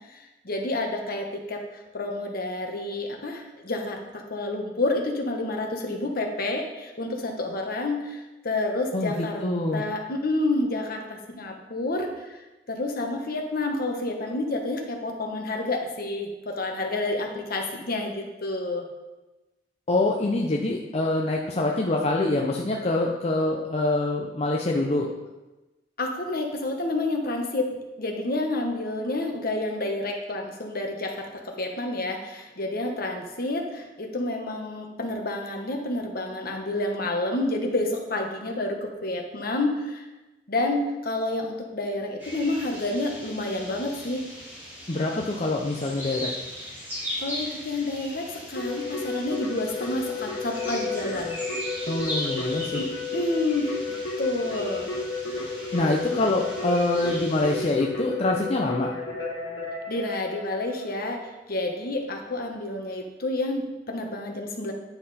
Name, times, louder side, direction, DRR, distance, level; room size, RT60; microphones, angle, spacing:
voice 1, 0.1-1.6 1.9-9.4 9.7-12.4 12.7-18.9 26.0-40.0 40.5-44.3 47.2-51.4 52.8-53.7 54.2-54.9 59.9-61.2 61.5-64.7, left 2 dB, 55° left, 2 dB, 1.3 m, -29 dB
voice 2, 8.9-9.8 19.9-25.1 44.9-46.3 51.9-52.8 55.7-58.9, left 2 dB, 35° left, -1 dB, 0.7 m, -25 dB
sound 1, 42.2-57.7, equal, 10° right, 3.2 m, -38 dB
Keyboard (musical), 48.6-61.0, left 3 dB, 80° left, 2.0 m, -32 dB
9.9 x 5.8 x 4.2 m, 1.1 s
head